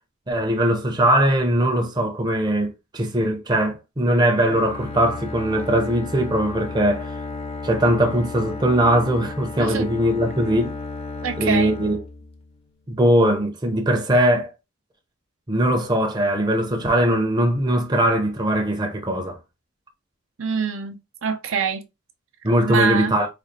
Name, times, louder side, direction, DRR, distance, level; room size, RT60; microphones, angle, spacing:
voice 1, 0.3-7.1 7.6-10.8 11.4-12.0 12.9-14.5 15.5-19.4 22.4-23.3, right 1 dB, 20° right, 0.6 m, -20 dB
Bowed string instrument, 4.4-12.7, left 3 dB, 30° left, 0.5 m, -34 dB
voice 2, 11.2-11.7 20.4-21.8 22.6-23.1, right 5 dB, 70° right, 0.6 m, -25 dB
4.1 x 2.4 x 3.2 m
head